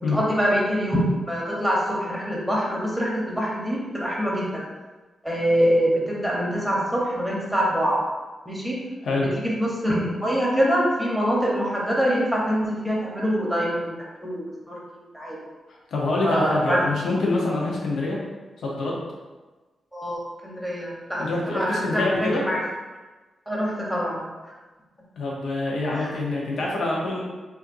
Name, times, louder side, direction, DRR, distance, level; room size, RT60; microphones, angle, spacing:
voice 1, 0.0-4.6 5.2-8.0 8.5-8.8 9.4-14.8 15.1-15.4 16.2-16.8 19.9-22.6 23.5-24.2, equal, 5° right, -4 dB, 0.9 m, -24 dB
voice 2, 15.9-18.2 18.6-19.0 21.2-22.4 25.2-27.2, left 2 dB, 80° left, -4 dB, 0.8 m, -25 dB
5.6 x 2.6 x 2.6 m, 1.2 s
wide cardioid pair, 160°, 0 cm